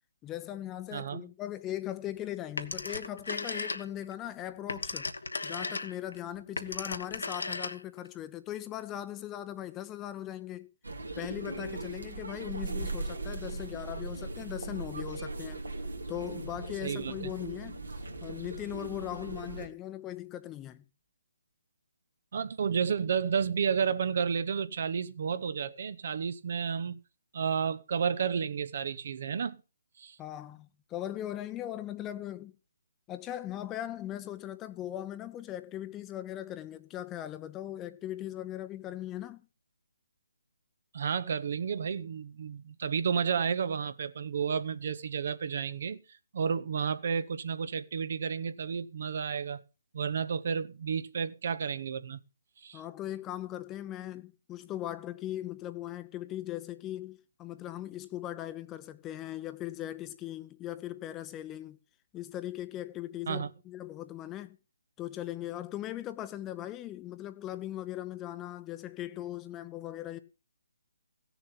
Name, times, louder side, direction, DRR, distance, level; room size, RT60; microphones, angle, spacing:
voice 1, 0.2-5.1 5.4-10.7 11.2-15.6 16.1-17.8 18.2-20.8 30.2-32.6 33.1-39.4 52.7-61.8 62.1-64.6 65.0-70.2, left 13 dB, 15° left, 0.7 m, -39 dB
voice 2, 0.9-1.2 16.8-17.3 22.3-27.0 27.3-29.6 30.0-30.2 40.9-46.0 46.3-49.6 49.9-52.2 52.6-52.8 63.3-63.5, right 6 dB, 50° right, 0.7 m, -31 dB
Telephone, 2.6-4.1 4.5-8.1, left 3 dB, 75° left, 1.2 m, -36 dB
sound 1, 10.8-19.7, right 2 dB, 80° right, 2.4 m, -39 dB
16.0 x 7.0 x 5.5 m
figure-of-eight pair, 145°, 0 cm